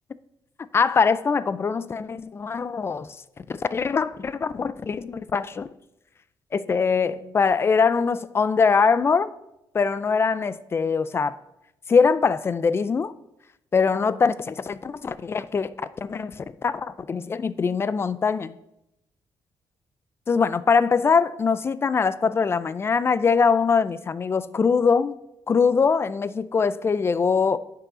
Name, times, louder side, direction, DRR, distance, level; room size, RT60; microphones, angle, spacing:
voice 1, 0.7-3.2 3.5-5.7 6.5-9.3 9.7-11.4 11.9-13.1 13.7-18.5 20.3-25.2 25.5-27.6, left 5 dB, 30° left, 0.3 m, -22 dB
9.9 x 5.6 x 3.7 m
cardioid pair, 125°, 9 cm